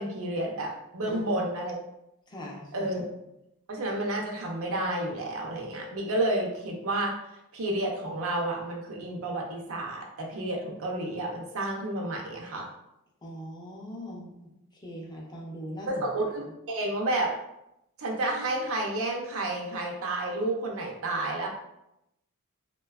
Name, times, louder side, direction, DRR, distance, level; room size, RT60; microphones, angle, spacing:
voice 1, 0.0-1.7 2.7-3.0 3.7-7.1 7.5-12.7 15.9-17.3 18.0-21.5, right 1 dB, 65° right, 0 dB, 0.5 m, -30 dB
voice 2, 1.1-1.4 2.3-2.9 13.2-14.3 14.8-16.0, equal, 20° left, -3 dB, 0.4 m, -40 dB
2.5 x 2.2 x 2.3 m, 0.84 s
head